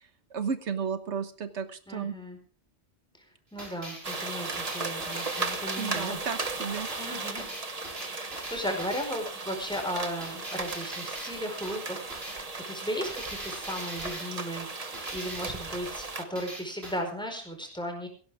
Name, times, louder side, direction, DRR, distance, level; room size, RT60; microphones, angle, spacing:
voice 1, 0.3-2.1 5.8-6.9, right 6 dB, 90° right, 10 dB, 1.5 m, -33 dB
voice 2, 1.9-2.4 3.2-6.2 7.0-7.5 8.0-18.1, equal, 5° left, 3 dB, 4.6 m, -36 dB
sound 1, 3.6-6.2 6.4-6.6 6.9-7.1 7.4-9.0 9.7-9.9 10.2-11.4 11.6-11.8 12.1-12.4 13.0-14.2 14.9-15.6 16.4-17.0, right 1 dB, 65° right, 5.4 m, -42 dB
sound 2, 4.0-16.2, right 3 dB, 35° right, 1.3 m, -36 dB
17.5 x 16.5 x 3.6 m, 0.40 s
omnidirectional pair, 1.1 m